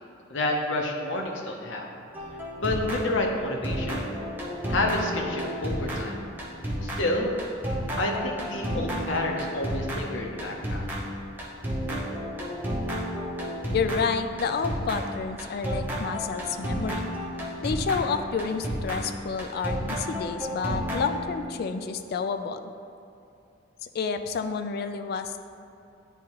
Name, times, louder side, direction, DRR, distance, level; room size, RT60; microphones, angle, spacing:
voice 1, 0.3-1.9 2.6-4.1 4.7-6.2 6.8-7.3 8.0-10.8, left 2 dB, 70° left, 1 dB, 0.8 m, -29 dB
sound 1, 2.1-3.4 3.6-21.4, equal, 10° right, 0.8 m, -32 dB
voice 2, 13.7-17.1 17.6-22.7 23.8-25.4, left 5 dB, 55° left, 8 dB, 0.3 m, -29 dB
9.0 x 3.6 x 3.0 m, 2.7 s
head